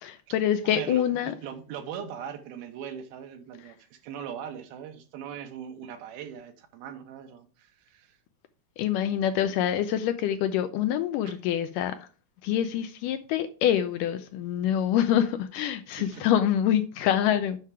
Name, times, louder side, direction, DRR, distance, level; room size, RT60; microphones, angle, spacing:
voice 1, 0.0-1.4 8.8-12.1 12.4-17.6, left 10 dB, 80° left, 2.0 m, -26 dB
voice 2, 0.6-8.2 11.3-11.4 16.0-16.2, right 8 dB, 85° right, 3.0 m, -40 dB
7.4 x 5.6 x 4.8 m
omnidirectional pair, 4.2 m